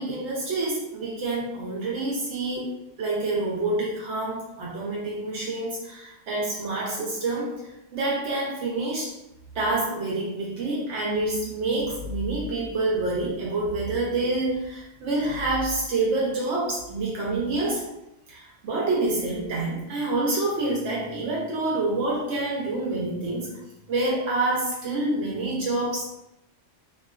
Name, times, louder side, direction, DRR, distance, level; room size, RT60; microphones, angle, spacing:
voice 1, 0.0-2.7 3.0-7.6 7.9-9.1 9.5-17.8 18.3-23.5 23.9-26.0, right 2 dB, 75° right, -3 dB, 0.9 m, -27 dB
2.4 x 2.2 x 2.3 m, 0.86 s
omnidirectional pair, 1.3 m